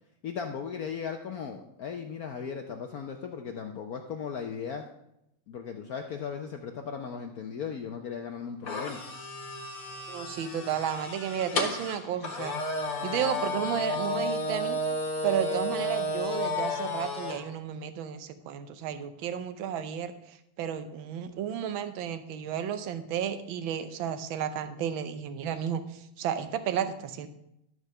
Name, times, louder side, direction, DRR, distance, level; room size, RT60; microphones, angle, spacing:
voice 1, 0.2-4.8 5.5-9.0, left 6 dB, 75° left, 4 dB, 0.8 m, -37 dB
sound 1, 8.7-17.4, left 1 dB, 45° left, 1.8 m, -32 dB
voice 2, 10.1-12.5 13.0-14.8 15.2-27.3, right 9 dB, 70° right, 10 dB, 1.5 m, -32 dB
12.5 x 4.8 x 6.5 m, 0.82 s
omnidirectional pair, 2.4 m